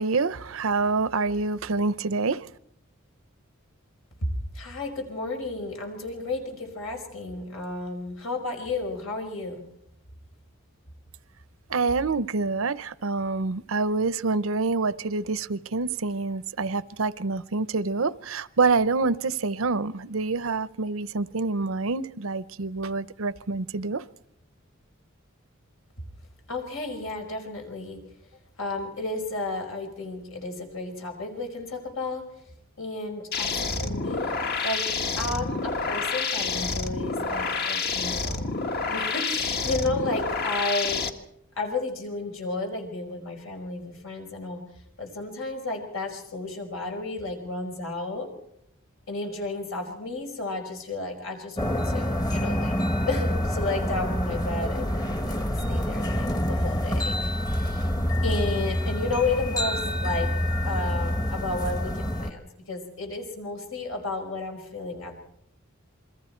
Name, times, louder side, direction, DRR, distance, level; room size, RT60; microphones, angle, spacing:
voice 1, 0.0-2.5 11.7-24.0, right 4 dB, 80° right, 0.7 m, -27 dB
voice 2, 4.2-9.6 26.5-28.0 28.6-32.2 32.8-34.3 34.6-34.8 35.2-41.0 41.6-44.6 45.0-48.3 49.1-52.8 53.1-57.9 58.2-60.3 60.6-65.2, left 2 dB, 80° left, 5.2 m, -32 dB
sound 1, 33.3-41.1, left 4 dB, 50° left, 1.7 m, -28 dB
sound 2, 51.6-62.3, equal, 20° left, 1.2 m, -27 dB
28.5 x 22.5 x 4.5 m
head